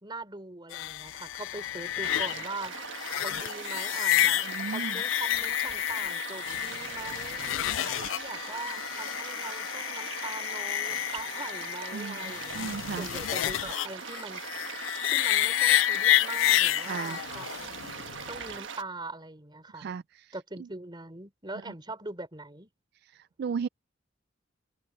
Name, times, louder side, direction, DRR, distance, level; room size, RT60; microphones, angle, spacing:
voice 1, 0.0-2.8 3.2-14.8 15.0-17.5 18.3-19.9 20.3-22.7, right 3 dB, 25° right, 3.5 m, -42 dB
sound 1, 0.7-18.6, left 13 dB, 85° left, 0.3 m, -30 dB
sound 2, 2.0-18.8, right 6 dB, 75° right, 1.4 m, -41 dB
voice 2, 4.4-5.0 11.9-13.1 16.8-17.2 19.7-20.3 23.0-23.7, right 6 dB, 55° right, 0.3 m, -36 dB
head